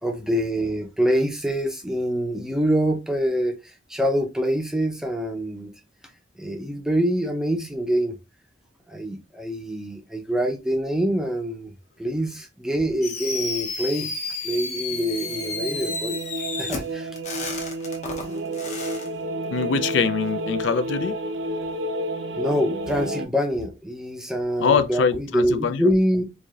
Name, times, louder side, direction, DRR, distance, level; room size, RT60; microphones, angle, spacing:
voice 1, 0.0-5.7 6.4-8.2 8.9-11.7 12.0-14.1 14.4-17.1 22.4-26.2, equal, 5° right, 0.5 m, -25 dB
Fireworks, 13.0-19.1, left 4 dB, 35° left, 0.8 m, -32 dB
sound 1, 14.9-23.3, right 1 dB, 65° right, 0.5 m, -30 dB
voice 2, 19.5-21.2 24.6-25.9, left 6 dB, 70° left, 0.4 m, -23 dB
4.7 x 2.6 x 2.4 m
head